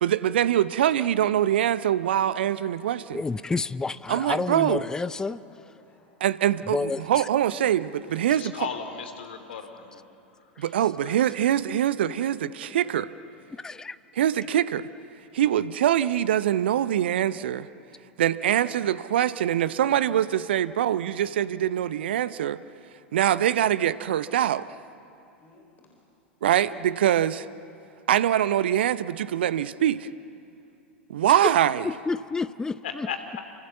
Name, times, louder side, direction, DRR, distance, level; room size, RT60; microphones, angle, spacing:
voice 1, 0.0-3.2 4.1-4.8 6.2-8.7 10.6-13.1 14.2-14.9 15.3-17.7 18.2-22.6 23.1-24.8 26.4-27.5 28.1-30.1 31.1-31.8, right 11 dB, 60° right, 16 dB, 0.7 m, -24 dB
voice 2, 3.1-5.4 6.7-7.3 10.6-10.7 13.6-14.0 31.4-31.5 31.8-33.1, left 4 dB, 10° left, 16 dB, 0.6 m, -29 dB
voice 3, 5.5-6.2 12.1-13.4 25.4-25.9 26.8-26.9, left 3 dB, 25° left, 2 dB, 4.2 m, -53 dB
voice 4, 8.3-10.0 11.0-11.2 32.8-33.4, left 7 dB, 60° left, 7 dB, 3.1 m, -36 dB
28.5 x 24.0 x 7.3 m, 2.6 s
figure-of-eight pair, 90°, 6 cm